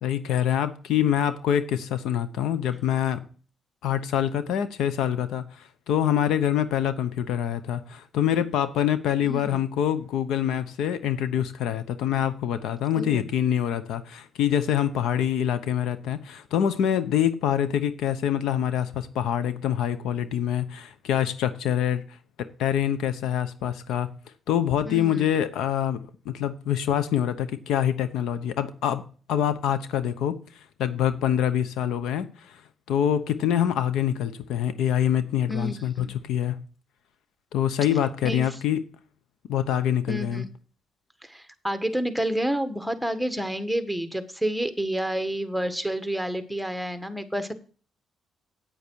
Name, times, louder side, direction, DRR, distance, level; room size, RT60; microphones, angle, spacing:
voice 1, 0.0-3.2 3.8-22.0 22.4-24.1 24.5-26.0 26.2-29.0 29.3-30.4 30.8-32.6 32.9-36.6 37.5-38.8 39.5-40.4, left 10 dB, 85° left, 13 dB, 0.9 m, -25 dB
voice 2, 9.2-9.6 13.0-13.2 24.9-25.3 35.5-36.1 38.2-38.4 40.1-40.4 41.2-47.5, equal, ahead, 9 dB, 1.3 m, -29 dB
8.9 x 8.6 x 4.6 m, 0.39 s
cardioid pair, 90°, 0 cm